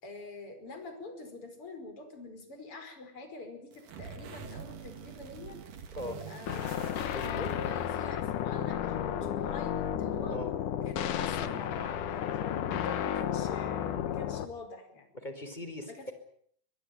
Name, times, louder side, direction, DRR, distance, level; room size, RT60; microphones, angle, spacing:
voice 1, 0.0-5.6 6.0-7.0 7.2-10.4 10.8-15.1 15.9-16.1, left 3 dB, 35° left, 7 dB, 5.8 m, -45 dB
sound 1, 3.7-7.9, right 6 dB, 60° right, 3.9 m, -46 dB
sound 2, 6.5-14.5, left 10 dB, 65° left, 2.7 m, -33 dB
voice 2, 7.1-7.5 10.3-10.5 13.8-14.1 15.1-16.1, left 1 dB, 10° left, 9 dB, 3.8 m, -40 dB
23.0 x 23.0 x 9.3 m, 0.65 s
omnidirectional pair, 4.3 m